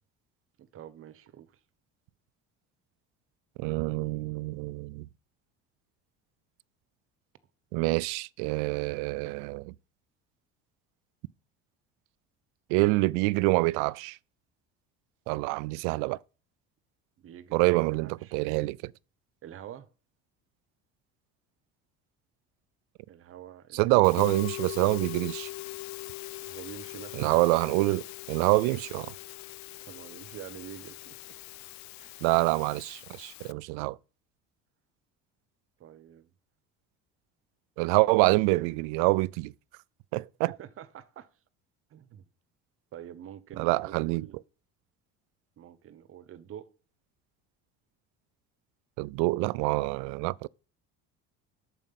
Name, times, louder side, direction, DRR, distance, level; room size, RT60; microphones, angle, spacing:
voice 1, 0.6-1.6 17.2-18.4 19.4-19.9 23.1-24.1 26.4-27.5 29.8-31.2 32.0-32.2 35.8-36.3 40.5-41.3 41.9-42.3 42.9-44.4 45.6-46.7, right 10 dB, 45° right, 1.1 m, -46 dB
voice 2, 3.6-5.1 7.7-9.7 12.7-14.2 15.3-16.2 17.5-18.9 23.7-25.5 27.2-29.1 32.2-34.0 37.8-39.5 40.1-40.5 43.6-44.2 49.0-50.5, right 23 dB, 85° right, 0.5 m, -26 dB
Musical instrument, 24.0-33.5, left 21 dB, 65° left, 0.5 m, -42 dB
9.2 x 7.7 x 5.8 m
cardioid pair, 120°, 30 cm